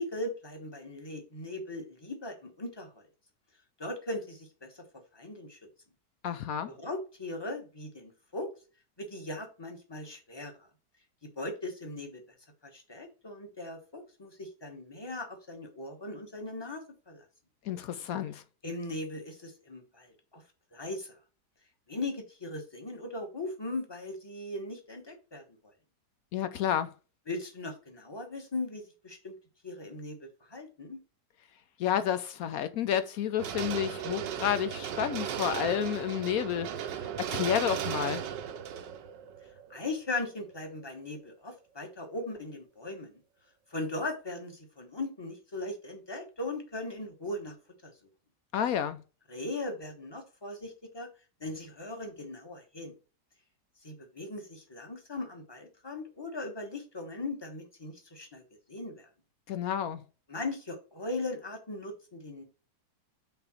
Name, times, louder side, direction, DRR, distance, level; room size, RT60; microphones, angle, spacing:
voice 1, 0.0-3.1 3.8-4.8 5.1-5.6 6.7-8.5 9.0-10.7 11.4-12.2 12.7-17.2 18.6-20.4 20.7-21.2 21.9-25.4 27.3-29.3 29.6-31.0 39.7-43.1 43.7-47.5 47.8-47.9 49.3-51.1 51.4-52.9 53.8-58.4 58.7-59.1 60.3-62.4, left 2 dB, 15° left, 1.1 m, -39 dB
voice 2, 6.2-6.7 17.7-18.4 26.3-26.9 31.8-36.7 37.0-38.2 48.5-49.0 59.5-60.0, left 9 dB, 70° left, 0.9 m, -30 dB
sound 1, 33.4-40.5 40.9-41.0, right 9 dB, 85° right, 1.4 m, -36 dB
5.8 x 3.7 x 5.5 m
omnidirectional pair, 1.9 m